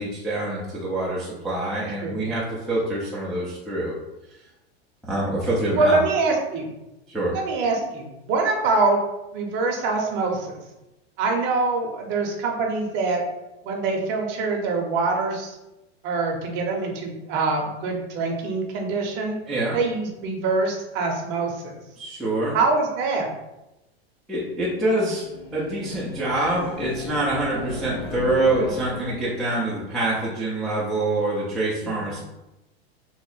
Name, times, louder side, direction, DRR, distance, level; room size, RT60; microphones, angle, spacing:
voice 1, 0.0-3.9 5.1-6.0 7.1-7.3 19.5-19.8 22.0-22.6 24.3-25.3 25.5-32.2, right 2 dB, ahead, -8 dB, 0.3 m, -25 dB
voice 2, 5.7-6.7 7.3-9.0 9.3-10.6 11.2-13.2 13.6-15.6 16.0-19.4 19.7-21.8 22.5-23.3 31.8-32.0, right 3 dB, 40° right, 1 dB, 0.6 m, -24 dB
sound 1, 24.9-29.5, left 2 dB, 35° left, 1.0 m, -36 dB
2.8 x 2.0 x 3.9 m, 0.97 s
supercardioid pair, 135°, 32 cm